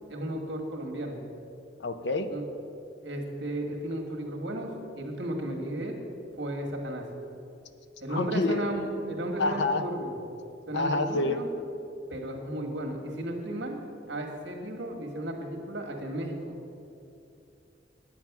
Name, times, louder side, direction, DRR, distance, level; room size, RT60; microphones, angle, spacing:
voice 1, 0.1-1.2 2.3-2.4 3.0-6.0 6.4-7.0 8.0-10.2 10.7-11.5 12.1-13.7 14.1-16.6, right 1 dB, 70° right, 2 dB, 1.6 m, -34 dB
voice 2, 1.8-2.3 8.1-8.7 9.4-9.8 10.7-11.4, left 3 dB, 70° left, 9 dB, 0.7 m, -27 dB
9.5 x 8.7 x 5.9 m, 2.7 s
head